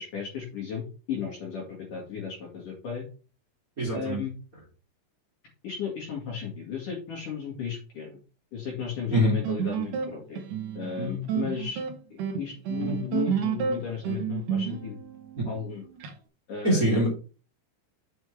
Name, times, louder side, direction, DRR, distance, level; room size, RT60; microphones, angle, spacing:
voice 1, 0.0-3.1 3.9-4.3 5.6-8.2 8.5-10.4 10.7-11.8 12.4-15.0 15.4-15.8 16.5-17.0, left 6 dB, 55° left, -2 dB, 2.8 m, -34 dB
voice 2, 3.8-4.2 9.1-9.3 15.4-15.5 16.6-17.1, right 1 dB, 25° right, -4 dB, 2.3 m, -23 dB
sound 1, 9.1-16.1, right 6 dB, 85° right, 1.8 m, -31 dB
8.9 x 6.4 x 3.3 m, 0.36 s
omnidirectional pair, 5.7 m